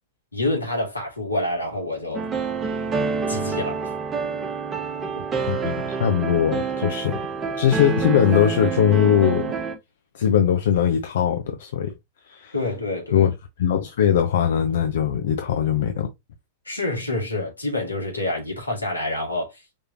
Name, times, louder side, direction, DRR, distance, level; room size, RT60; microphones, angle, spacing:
voice 1, 0.3-2.3 3.3-3.8 12.5-13.3 16.7-19.6, left 2 dB, 85° left, 2.2 m, -27 dB
sound 1, 2.1-9.8, right 5 dB, 20° right, 1.1 m, -27 dB
voice 2, 5.5-7.2 7.6-9.5 10.1-11.9 12.3-12.5 13.1-13.3 13.6-16.1, left 9 dB, 60° left, 0.7 m, -20 dB
5.3 x 3.3 x 2.8 m
figure-of-eight pair, 90°, 0 cm